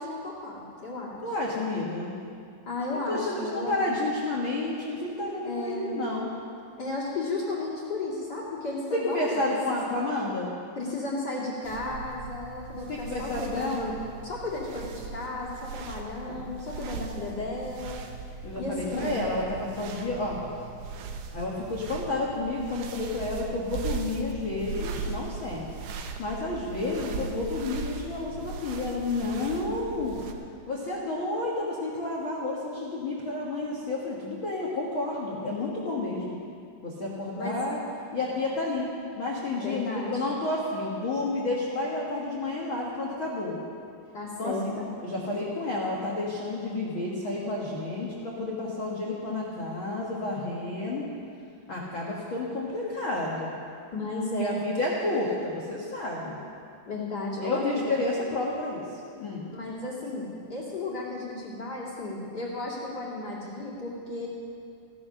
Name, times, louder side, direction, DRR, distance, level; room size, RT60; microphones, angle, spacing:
voice 1, 0.0-1.3 2.7-4.0 5.4-6.0 6.8-9.4 9.7-9.8 10.8-13.9 14.2-18.0 18.6-19.3 37.4-37.6 39.6-40.3 44.1-44.9 53.9-54.5 56.9-58.0 59.5-64.3, left 2 dB, 35° left, -5 dB, 1.8 m, -34 dB
voice 2, 1.2-2.1 2.9-6.3 8.9-10.5 12.9-13.9 18.4-20.4 21.3-25.6 26.2-30.2 30.7-36.4 36.8-37.8 38.1-38.9 39.2-43.6 44.4-44.6 45.0-51.1 51.7-53.6 54.4-56.4 57.4-58.8 59.2-59.5, left 2 dB, 85° left, -4 dB, 1.1 m, -30 dB
sound 1, 11.6-30.3, right 5 dB, 85° right, 1.8 m, -39 dB
16.0 x 11.0 x 6.4 m, 2.4 s
omnidirectional pair, 5.1 m